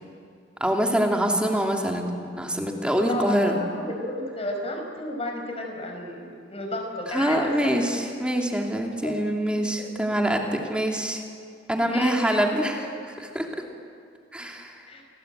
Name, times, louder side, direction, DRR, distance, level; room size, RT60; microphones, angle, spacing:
voice 1, 0.6-3.6 7.1-11.2 11.7-13.5 14.3-14.9, equal, 5° right, 1 dB, 2.6 m, -25 dB
voice 2, 3.1-7.8 9.0-9.2 9.5-10.2 11.8-12.4 12.8-12.9 14.4-14.5 14.9-15.0, left 1 dB, 30° left, 2 dB, 5.3 m, -33 dB
29.5 x 20.5 x 9.1 m, 2.4 s
head